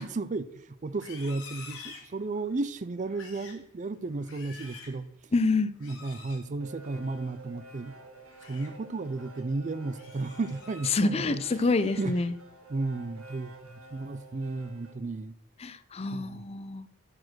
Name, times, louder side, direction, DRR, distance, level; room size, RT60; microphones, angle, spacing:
voice 1, 0.0-5.3 5.8-7.9 8.4-11.7 12.0-12.1 12.7-15.4 16.1-16.4, right 3 dB, 35° right, 0.4 m, -34 dB
Livestock farm animals working animals, 0.9-2.6 3.0-3.6 4.1-5.0 5.8-6.4 8.1-8.7 9.2-9.4 9.9-11.0 11.4-12.5 12.9-13.2 13.6-14.0, left 5 dB, 65° left, 3.0 m, -49 dB
voice 2, 5.3-5.7 10.9-12.3 15.6-16.9, left 3 dB, 30° left, 0.5 m, -27 dB
sound 1, 6.2-14.9, right 2 dB, 85° right, 1.7 m, -50 dB
12.0 x 5.0 x 6.2 m
head